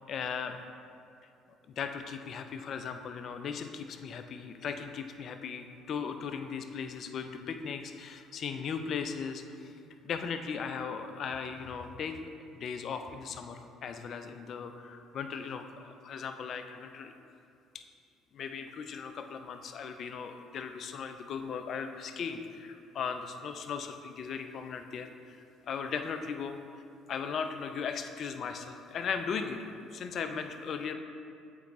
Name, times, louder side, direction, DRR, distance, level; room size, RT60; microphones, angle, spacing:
voice 1, 0.1-0.6 1.8-9.7 10.0-17.1 17.7-17.8 18.3-25.4 25.7-26.6 27.1-30.9, left 6 dB, 55° left, 7 dB, 0.5 m, -37 dB
8.2 x 4.5 x 3.1 m, 2.4 s
hypercardioid pair, 60°, 0 cm